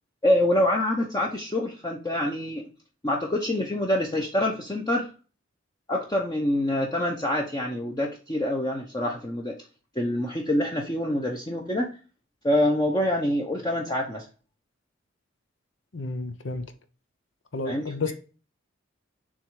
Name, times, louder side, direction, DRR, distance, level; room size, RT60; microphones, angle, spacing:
voice 1, 0.2-2.6 3.0-5.1 5.9-9.6 10.0-11.9 12.4-14.3 17.6-17.8, left 1 dB, 20° left, 0.8 m, -26 dB
voice 2, 15.9-16.7 17.5-18.1, left 3 dB, 75° left, 0.8 m, -31 dB
7.2 x 3.1 x 4.8 m
head